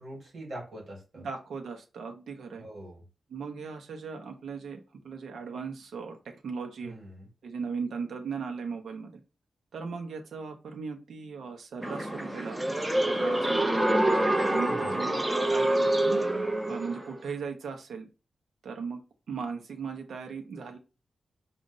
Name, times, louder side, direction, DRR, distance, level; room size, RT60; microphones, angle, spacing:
voice 1, 0.0-1.3 2.6-3.0 6.8-7.3 14.6-15.0, right 1 dB, 50° right, -2 dB, 2.5 m, -43 dB
voice 2, 1.2-2.6 3.3-7.0 7.4-9.2 9.7-12.6 13.0-13.9 14.4-16.2 16.7-18.1 18.6-19.0 19.3-20.8, right 5 dB, 85° right, 4 dB, 0.9 m, -38 dB
sound 1, 11.8-17.1, right 1 dB, 15° right, 0.7 m, -26 dB
5.1 x 2.5 x 3.9 m, 0.30 s
wide cardioid pair, 155°, 0 cm